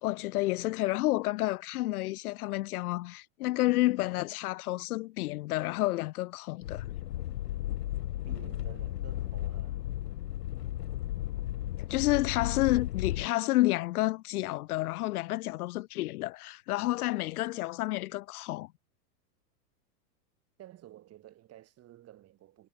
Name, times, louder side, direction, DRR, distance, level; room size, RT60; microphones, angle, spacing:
voice 1, 0.0-6.8 11.8-18.7, left 18 dB, 65° left, 0.8 m, -30 dB
sound 1, 6.6-13.3, left 13 dB, 85° left, 1.4 m, -34 dB
voice 2, 8.2-9.8 20.6-22.7, right 13 dB, 30° right, 5.0 m, -52 dB
supercardioid pair, 135°, 48 cm